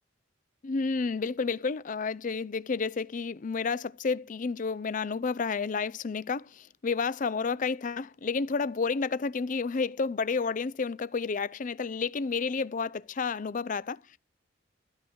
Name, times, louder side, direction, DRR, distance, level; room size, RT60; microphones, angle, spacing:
voice 1, 0.6-14.2, left 4 dB, 45° left, 0.5 m, -31 dB
13.0 x 4.7 x 7.9 m
head